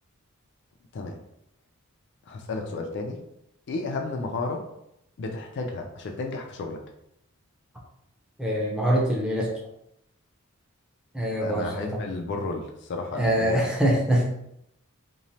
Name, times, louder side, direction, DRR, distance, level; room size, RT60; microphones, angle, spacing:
voice 1, 2.3-3.2 3.7-4.6 5.2-6.8 11.4-12.6 12.9-13.6, left 3 dB, 55° left, 3 dB, 0.4 m, -32 dB
voice 2, 8.4-9.5 11.1-12.0 13.1-14.2, right 1 dB, 5° right, -2 dB, 0.5 m, -24 dB
2.9 x 2.0 x 2.7 m, 0.79 s
head